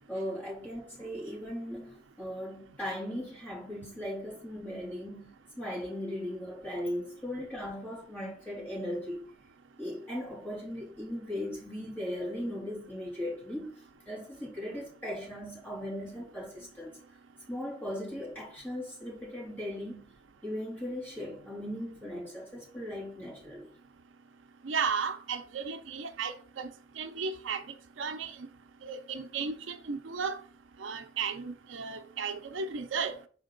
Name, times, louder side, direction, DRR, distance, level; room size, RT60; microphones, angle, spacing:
voice 1, 0.1-9.2 9.8-17.0 17.5-20.1 20.4-23.7, left 1 dB, 10° left, 2.9 m, -38 dB
voice 2, 24.6-26.7 27.0-27.6 28.0-28.3 28.8-30.3 30.8-33.1, right 5 dB, 75° right, 0.6 m, -34 dB
5.7 x 4.4 x 3.8 m
head